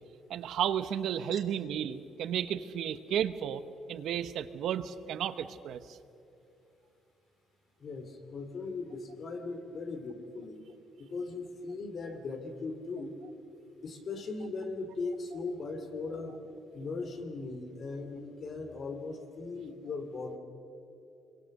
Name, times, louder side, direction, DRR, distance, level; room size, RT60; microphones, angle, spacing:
voice 1, 0.3-3.6 3.9-6.0, right 9 dB, 70° right, 12 dB, 1.0 m, -33 dB
voice 2, 7.8-10.6 11.0-13.2 13.8-16.4 16.7-20.4, left 3 dB, 40° left, 6 dB, 2.7 m, -38 dB
26.5 x 23.0 x 6.6 m, 2.7 s
cardioid pair, 160°, 0 cm